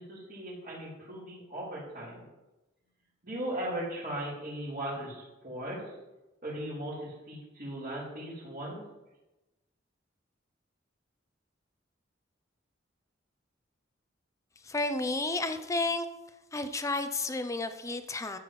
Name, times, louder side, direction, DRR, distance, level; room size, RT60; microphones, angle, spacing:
voice 1, 0.0-2.2 3.2-5.9 6.4-8.8, right 1 dB, 50° right, -8 dB, 4.0 m, -38 dB
voice 2, 14.6-16.1 16.5-18.4, left 2 dB, 15° left, 9 dB, 0.5 m, -31 dB
13.5 x 7.8 x 3.2 m, 1.1 s
head